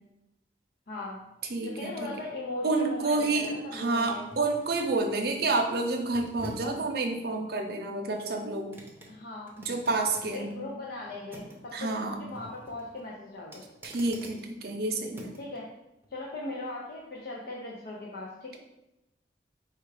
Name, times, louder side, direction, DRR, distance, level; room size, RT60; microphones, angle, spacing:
voice 1, 0.9-1.2 1.6-4.3 9.1-9.5 10.3-11.9 12.2-13.6 15.4-15.7 16.1-18.6, left 2 dB, 60° left, -3 dB, 0.6 m, -39 dB
sound 1, 0.9-15.6 16.0-16.2, equal, 15° right, 0.7 m, -50 dB
voice 2, 1.5-1.9 2.6-8.7 9.6-10.5 11.7-12.2 13.8-15.3, right 3 dB, 60° right, 3 dB, 0.6 m, -29 dB
4.4 x 2.3 x 4.8 m, 0.92 s
head